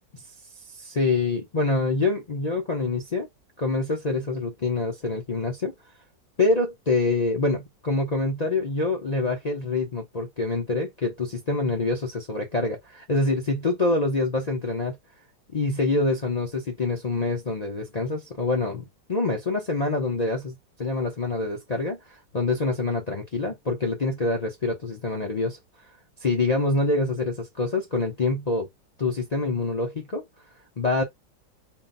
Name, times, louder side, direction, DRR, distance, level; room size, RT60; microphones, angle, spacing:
voice 1, 0.8-3.3 3.6-5.7 6.4-15.0 15.5-25.6 26.2-28.7 29.0-30.2 30.8-31.0, left 3 dB, 65° left, 0.4 m, -26 dB
3.9 x 2.1 x 4.0 m
omnidirectional pair, 2.0 m